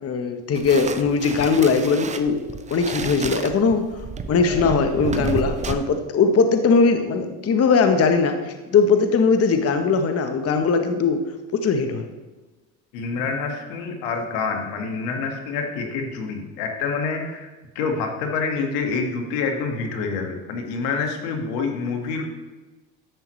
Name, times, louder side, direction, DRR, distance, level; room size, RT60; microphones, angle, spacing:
voice 1, 0.0-2.4 2.7-3.9 4.3-11.2 11.5-12.0, left 5 dB, 30° left, 7 dB, 0.9 m, -20 dB
sound 1, 0.5-5.7, right 5 dB, 15° right, 0.5 m, -31 dB
voice 2, 12.9-17.5 17.8-22.2, left 4 dB, 80° left, 3 dB, 1.7 m, -27 dB
11.0 x 7.5 x 3.1 m, 1.2 s
supercardioid pair, 95°, 49 cm